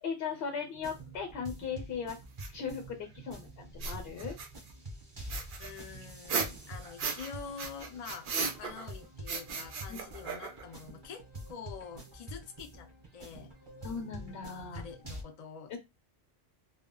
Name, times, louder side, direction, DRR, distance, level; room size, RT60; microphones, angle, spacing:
voice 1, 0.0-2.2 2.5-4.3 9.9-10.0 13.8-14.8 15.7-15.8, left 6 dB, 75° left, 4 dB, 0.8 m, -38 dB
sound 1, 0.7-15.2, right 1 dB, 25° right, 0.8 m, -47 dB
sound 2, 2.4-2.5 3.7-4.7 5.3-7.3 7.6-8.9 9.3-10.7, right 5 dB, 60° right, 0.7 m, -36 dB
voice 2, 5.6-13.5 14.7-15.8, left 6 dB, 50° left, 6 dB, 0.5 m, -46 dB
2.3 x 2.1 x 3.6 m, 0.23 s
omnidirectional pair, 1.1 m